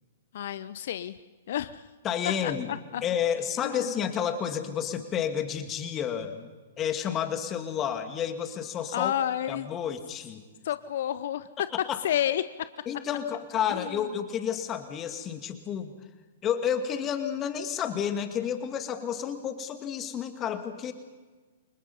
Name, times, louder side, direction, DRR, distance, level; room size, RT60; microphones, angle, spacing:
voice 1, 0.3-1.2 1.5-1.9 2.4-3.0 3.6-4.0 8.9-9.7 10.6-11.7 12.0-12.7 13.7-14.1, left 11 dB, 50° left, 14 dB, 0.8 m, -30 dB
voice 2, 2.0-2.7 3.0-6.5 6.8-9.1 9.5-10.4 11.9-12.0 12.9-15.9 16.4-20.9, left 8 dB, 25° left, 8 dB, 2.5 m, -30 dB
29.5 x 25.0 x 5.6 m, 1.3 s
figure-of-eight pair, 110°, 0 cm